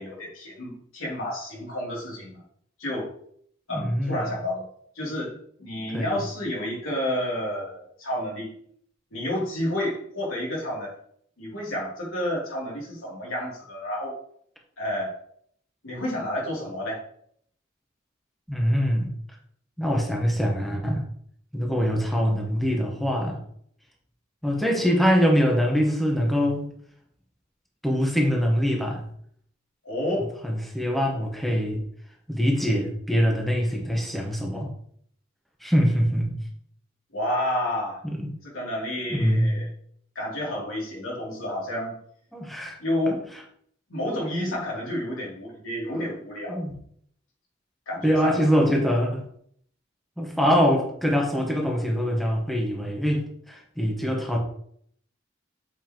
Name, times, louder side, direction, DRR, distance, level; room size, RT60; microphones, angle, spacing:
voice 1, 0.0-2.4 2.8-3.1 3.7-4.6 4.9-5.3 5.6-8.5 9.1-10.9 11.4-14.1 14.8-15.1 15.8-17.0 29.8-30.3 37.1-38.0 38.4-39.7 40.1-42.0 42.8-43.2 43.9-46.6 47.9-48.5, left 1 dB, 90° left, -4 dB, 2.9 m, -30 dB
voice 2, 3.7-4.2 5.9-6.2 18.5-19.1 19.8-21.0 21.5-23.4 24.4-26.6 27.8-29.0 30.4-31.8 32.3-34.7 35.6-36.4 38.0-38.2 39.1-39.5 42.3-42.8 43.1-43.2 45.9-46.1 46.5-46.7 48.0-49.2 50.2-54.4, equal, ahead, -1 dB, 1.1 m, -24 dB
7.5 x 5.5 x 3.0 m, 0.65 s
head